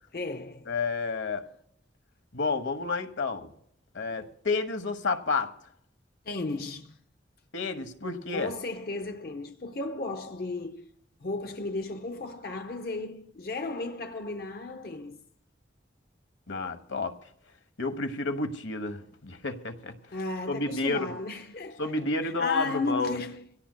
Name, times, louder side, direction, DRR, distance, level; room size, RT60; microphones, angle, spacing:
voice 1, 0.1-0.7 6.2-7.0 8.3-10.9 11.2-15.2 20.1-21.9 22.2-23.4, left 3 dB, 50° left, 0.6 m, -34 dB
voice 2, 0.7-1.5 2.3-3.5 3.9-5.5 7.5-8.5 16.5-17.2 17.8-19.9 20.5-21.1 21.8-23.1, left 3 dB, 90° left, 1.1 m, -30 dB
25.5 x 17.0 x 2.2 m
head